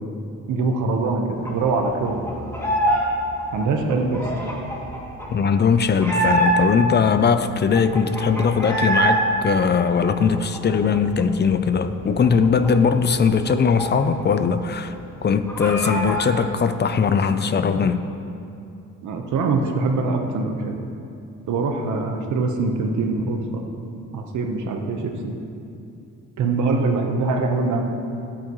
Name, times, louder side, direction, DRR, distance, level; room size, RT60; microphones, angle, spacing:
voice 1, 0.5-2.2 3.5-4.5 19.0-20.7 21.5-23.6 24.1-25.4 26.4-27.8, right 3 dB, 75° right, 3 dB, 1.2 m, -23 dB
sound 1, 1.4-3.1 3.3-6.9 7.3-7.4 7.5-9.2 9.5-11.2 11.5-11.7 12.0-14.4 14.7-14.8 15.1-16.3, right 1 dB, 10° left, 2.5 m, -25 dB
voice 2, 5.3-14.9 15.2-18.0, left 6 dB, 35° left, 10 dB, 0.6 m, -20 dB
15.0 x 8.7 x 3.1 m, 2.6 s
cardioid pair, 90°, 30 cm